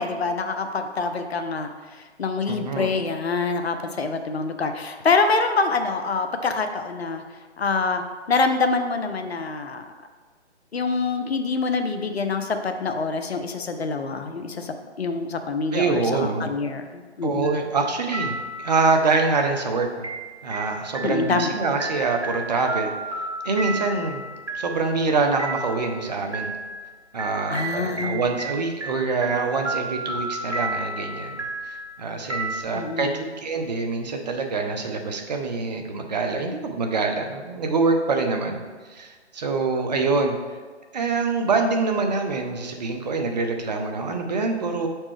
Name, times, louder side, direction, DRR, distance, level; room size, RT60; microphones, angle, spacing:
voice 1, 0.0-1.7 2.2-7.2 7.6-8.0 8.3-9.8 10.7-17.6 21.0-21.5 27.5-28.2 32.7-33.2, left 4 dB, 60° left, 7 dB, 0.7 m, -25 dB
voice 2, 2.5-2.9 15.7-16.5 17.2-20.1 20.4-22.9 23.4-24.2 24.5-26.5 27.1-40.4 40.9-44.9, right 4 dB, 35° right, 4 dB, 0.6 m, -25 dB
sound 1, 17.4-17.9 18.1-32.6, right 2 dB, 75° right, 1.6 m, -33 dB
6.9 x 4.4 x 3.3 m, 1.4 s
figure-of-eight pair, 140°, 35 cm